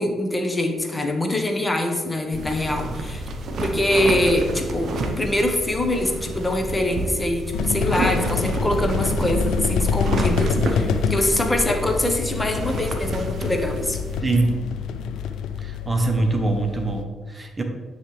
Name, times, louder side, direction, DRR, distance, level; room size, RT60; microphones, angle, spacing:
voice 1, 0.0-3.2 3.6-14.0, left 1 dB, 20° left, 3 dB, 1.0 m, -24 dB
sound 1, 2.3-14.2, right 2 dB, 60° right, 0.7 m, -30 dB
sound 2, 7.5-17.0, left 6 dB, 80° left, 0.3 m, -26 dB
voice 2, 14.2-14.6 15.6-17.6, right 2 dB, 30° right, 4 dB, 0.9 m, -23 dB
9.6 x 3.3 x 3.2 m, 1.4 s
supercardioid pair, 55°, 0 cm